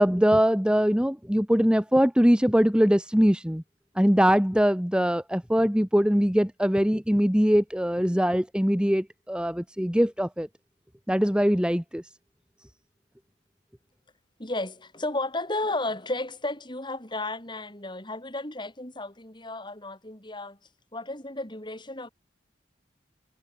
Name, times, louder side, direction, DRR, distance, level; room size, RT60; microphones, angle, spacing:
voice 1, 0.0-3.6 4.0-10.5 11.1-12.0, equal, 5° right, 1.3 m, -22 dB
voice 2, 14.4-20.6 20.9-22.1, left 2 dB, 25° left, 6.3 m, -33 dB
head